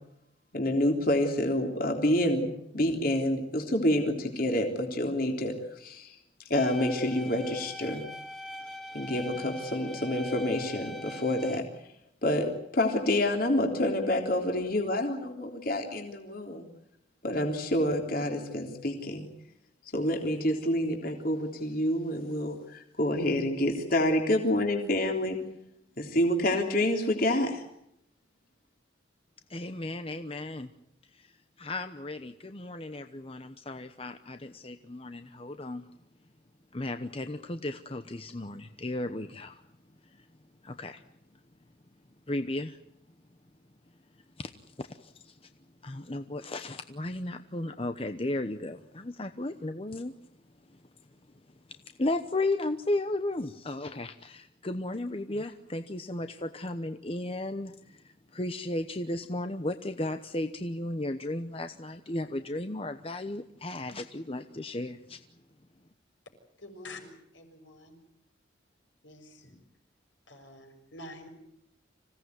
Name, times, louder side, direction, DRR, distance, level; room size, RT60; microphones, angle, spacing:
voice 1, 0.5-5.5 5.8-6.1 6.5-8.0 8.9-11.6 12.2-16.7 17.2-19.3 19.9-25.4 26.0-27.6, left 1 dB, 50° left, 3 dB, 3.5 m, -28 dB
sound 1, 6.5-11.6, left 1 dB, 5° left, 2.4 m, -42 dB
voice 2, 29.5-30.7 31.1-35.9 36.7-39.6 40.1-40.3 40.6-41.0 42.3-42.8 44.4-45.5 45.8-50.1 50.7-50.8 51.7-65.2, left 2 dB, 30° left, 9 dB, 0.9 m, -35 dB
voice 3, 66.6-68.0 69.0-69.5 70.3-71.3, left 2 dB, 75° left, 5 dB, 6.3 m, -47 dB
26.5 x 17.0 x 9.6 m, 0.76 s
head